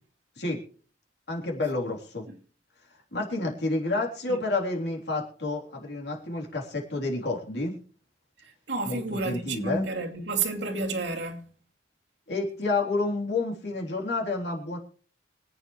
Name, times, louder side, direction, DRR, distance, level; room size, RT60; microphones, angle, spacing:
voice 1, 1.3-2.2 3.1-7.7 8.8-9.8 12.3-14.8, left 2 dB, 65° left, 3.5 m, -29 dB
voice 2, 8.7-11.5, right 3 dB, 70° right, 2.7 m, -30 dB
25.5 x 9.0 x 3.2 m
head